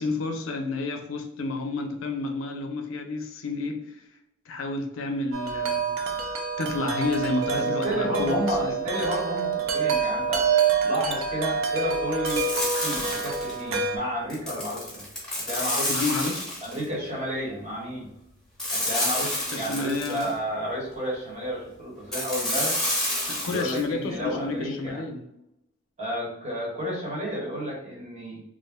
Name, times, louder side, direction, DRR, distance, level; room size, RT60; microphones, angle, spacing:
voice 1, 0.0-4.0 4.5-6.0 6.6-8.7 15.9-16.5 19.5-20.3 23.3-25.3, left 3 dB, 85° left, 5 dB, 0.5 m, -30 dB
Wind chime, 5.3-14.0, right 5 dB, 80° right, 0.4 m, -27 dB
voice 2, 7.5-10.5 10.8-15.0 15.4-15.9 16.6-18.1 18.7-22.8 23.5-25.0 26.0-28.4, equal, 35° right, -4 dB, 1.1 m, -31 dB
sound 1, 12.2-13.6 14.3-16.8 18.6-20.3 22.1-23.8, left 1 dB, 5° left, 0.8 m, -29 dB
2.5 x 2.1 x 3.3 m, 0.78 s
head